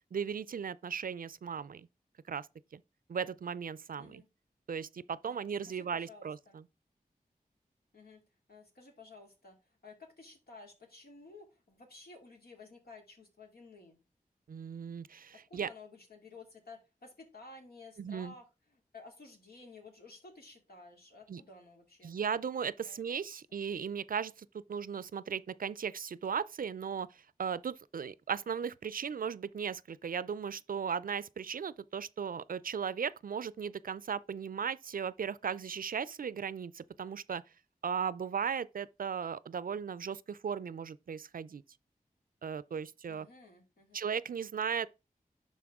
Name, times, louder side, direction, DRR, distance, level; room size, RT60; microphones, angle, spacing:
voice 1, 0.1-1.9 2.3-2.5 2.7-2.8 3.1-4.2 4.7-6.6 14.5-15.7 18.0-18.3 21.3-21.4 22.0-37.4 37.8-41.6 42.4-43.3 43.9-44.9, right 7 dB, 70° right, 0.4 m, -37 dB
voice 2, 4.0-4.3 5.3-6.6 7.9-8.2 8.5-9.6 9.8-14.0 15.3-22.1 22.9-23.3 43.1-44.0, left 3 dB, 90° left, 2.4 m, -54 dB
11.0 x 4.2 x 3.6 m
wide cardioid pair, 55°, 15 cm